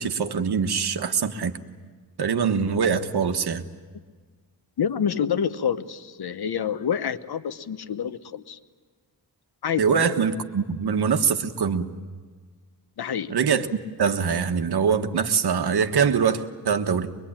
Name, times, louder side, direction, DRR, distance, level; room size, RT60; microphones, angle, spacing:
voice 1, 0.0-1.5 2.2-3.6 9.8-11.9 13.3-17.2, right 6 dB, 70° right, 8 dB, 1.4 m, -23 dB
voice 2, 4.8-8.6 9.6-10.0 13.0-13.3, left 8 dB, 70° left, 12 dB, 1.1 m, -27 dB
23.5 x 23.0 x 8.8 m, 1.5 s
wide cardioid pair, 95°, 39 cm